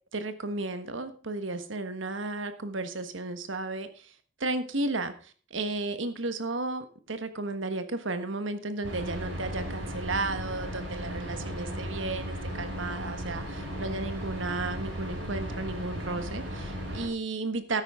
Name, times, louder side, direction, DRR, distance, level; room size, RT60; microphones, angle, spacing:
voice 1, 0.1-4.1 4.4-17.8, right 2 dB, 70° right, 9 dB, 1.4 m, -33 dB
sound 1, 8.8-17.1, equal, 90° right, 4.9 m, -36 dB
13.0 x 9.9 x 3.7 m, 0.39 s
head